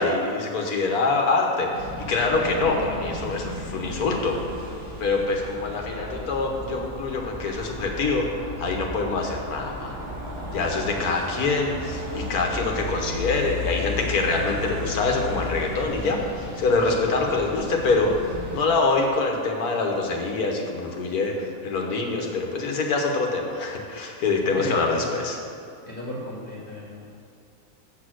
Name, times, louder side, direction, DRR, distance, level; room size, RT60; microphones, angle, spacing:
voice 1, 0.0-4.7 5.0-9.9 10.5-25.4, left 3 dB, 85° left, 1 dB, 1.5 m, -25 dB
sound 1, 1.7-18.6, left 1 dB, 20° right, 1.6 m, -34 dB
voice 2, 24.5-25.1 25.8-27.1, equal, 15° left, -6 dB, 1.7 m, -35 dB
8.2 x 6.3 x 6.3 m, 2.5 s
omnidirectional pair, 1.5 m